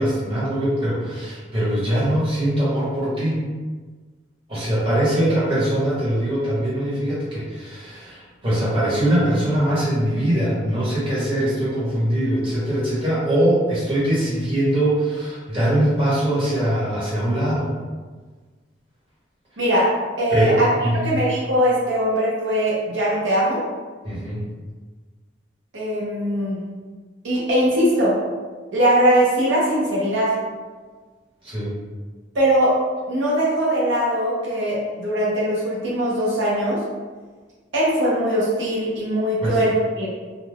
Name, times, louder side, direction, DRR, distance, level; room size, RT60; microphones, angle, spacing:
voice 1, 0.0-3.4 4.5-17.7 20.3-21.2 24.0-24.4 31.4-31.7 39.4-39.5, right 1 dB, 30° right, -9 dB, 1.1 m, -22 dB
voice 2, 19.6-19.9 20.2-20.7 21.0-23.6 25.7-26.6 27.2-28.1 28.7-30.3 32.3-32.8 33.1-36.8 37.7-40.1, equal, 85° right, -6 dB, 0.7 m, -20 dB
2.4 x 2.2 x 3.3 m, 1.4 s
head